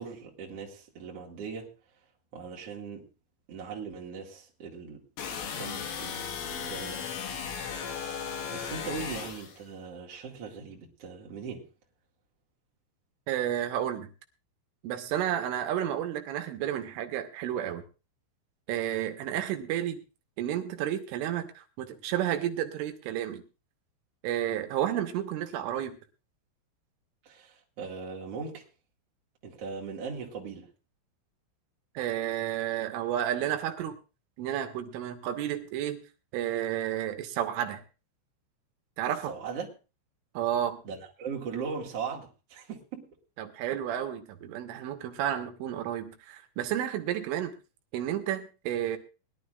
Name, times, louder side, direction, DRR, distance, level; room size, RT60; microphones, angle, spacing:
voice 1, 0.0-1.7 2.3-3.1 3.5-5.0 5.5-7.1 8.5-11.7 27.2-28.6 29.4-30.7 39.3-39.7 40.8-43.1, right 5 dB, 45° right, 2.2 m, -39 dB
sound 1, 5.2-9.6, left 7 dB, 75° left, 4.2 m, -36 dB
voice 2, 13.3-14.1 14.8-17.8 18.7-20.0 20.4-23.4 24.2-26.0 32.0-33.9 34.4-36.0 36.3-37.8 39.0-39.3 40.4-40.8 43.4-47.5 47.9-49.0, right 11 dB, 80° right, 3.6 m, -31 dB
21.0 x 11.5 x 2.5 m
omnidirectional pair, 5.8 m